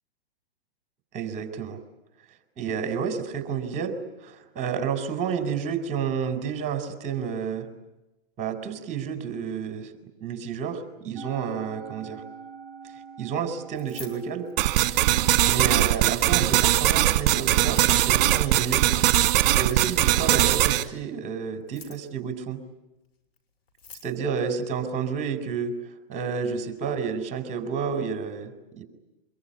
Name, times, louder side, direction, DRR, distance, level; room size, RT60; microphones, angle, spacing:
voice 1, 1.1-1.8 2.6-7.7 8.4-9.9 10.2-12.2 13.2-14.5 15.4-18.9 19.5-22.6 24.0-25.7 26.1-28.5 28.8-28.9, right 6 dB, 25° right, 8 dB, 4.3 m, -30 dB
Musical instrument, 11.2-17.6, right 5 dB, 10° left, 7.4 m, -46 dB
Keys jangling, 13.7-15.0 15.5-16.2 17.5-18.0 19.5-20.2 21.5-22.2 23.4-23.5 23.7-24.1, left 4 dB, 75° left, 6.4 m, -47 dB
sound 1, 14.6-20.8, right 14 dB, 45° right, 1.7 m, -21 dB
24.5 x 22.5 x 9.9 m, 0.96 s
hypercardioid pair, 130°, 30 cm